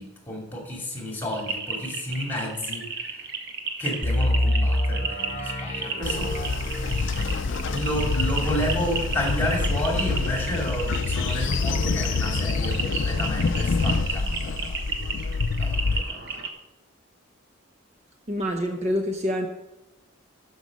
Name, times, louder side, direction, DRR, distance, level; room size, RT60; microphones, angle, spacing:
voice 1, 0.0-3.2 3.8-6.5 7.7-14.8 15.6-16.2, equal, 10° left, -1 dB, 2.6 m, -31 dB
sound 1, 1.3-16.5, right 5 dB, 50° right, 1.2 m, -33 dB
sound 2, 4.0-13.8 14.1-14.2 14.7-14.9, left 1 dB, 30° left, 1.0 m, -30 dB
Train, 6.0-16.0, left 4 dB, 60° left, 0.5 m, -26 dB
voice 2, 18.3-19.5, equal, 30° right, 4 dB, 0.7 m, -26 dB
12.5 x 5.5 x 5.3 m, 0.96 s
head